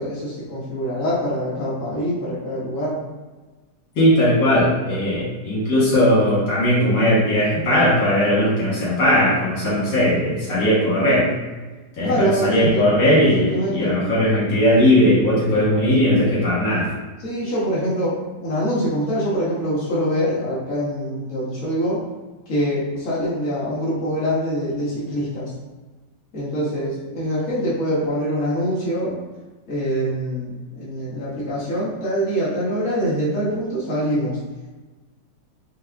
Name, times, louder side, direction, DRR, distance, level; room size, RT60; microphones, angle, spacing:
voice 1, 0.0-3.0 12.0-12.9 13.2-13.9 17.2-22.0 22.5-25.5 26.3-29.2 29.7-34.4, equal, 45° left, -9 dB, 1.7 m, -24 dB
voice 2, 4.0-11.3 12.0-16.9, equal, 85° left, -9 dB, 2.4 m, -18 dB
5.4 x 2.3 x 3.5 m, 1.2 s
omnidirectional pair, 1.9 m